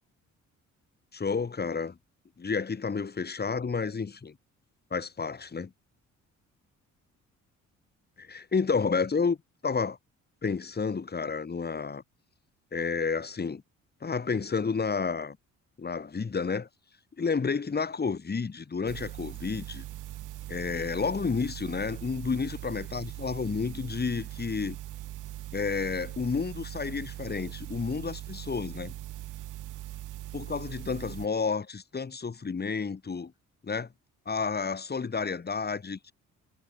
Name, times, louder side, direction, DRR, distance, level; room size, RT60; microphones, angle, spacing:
voice 1, 1.1-2.0 2.4-4.4 4.9-5.7 8.2-9.4 9.6-10.0 10.4-12.0 12.7-13.6 14.0-15.4 15.8-16.7 17.2-19.8 20.5-24.8 25.5-28.9 30.3-33.3 33.6-33.9 34.3-36.1, left 5 dB, 35° left, 4.0 m, -30 dB
sound 1, 18.9-31.3, right 14 dB, 85° right, 7.6 m, -41 dB
cardioid pair, 90°, 30 cm